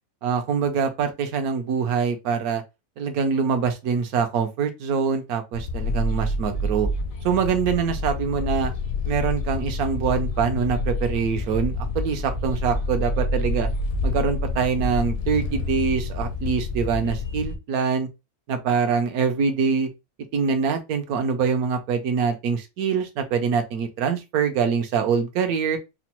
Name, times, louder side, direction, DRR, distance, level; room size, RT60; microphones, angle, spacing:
voice 1, 0.2-2.6 3.0-6.9 7.2-8.7 9.0-13.7 14.0-18.1 18.5-19.9 20.3-25.8, right 6 dB, 80° right, 1.2 m, -24 dB
sound 1, 5.5-17.6, left 2 dB, 70° left, 1.2 m, -28 dB
4.9 x 2.0 x 2.9 m
omnidirectional pair, 1.6 m